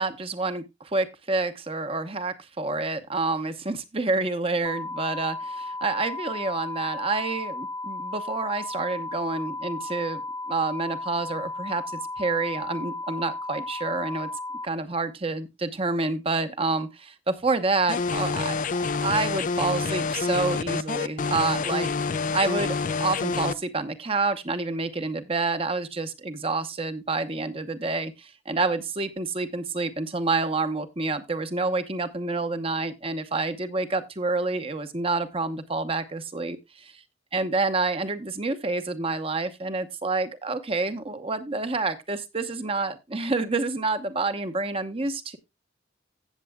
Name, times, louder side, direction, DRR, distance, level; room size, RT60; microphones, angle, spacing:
voice 1, 0.0-10.2 10.5-14.3 14.6-18.6 19.0-21.9 22.3-37.0 37.3-45.4, right 3 dB, 30° right, 0.9 m, -28 dB
sound 1, 4.6-14.7, left 2 dB, 15° left, 1.1 m, -35 dB
sound 2, 17.9-23.5, left 4 dB, 40° left, 0.4 m, -27 dB
15.5 x 7.6 x 2.3 m
head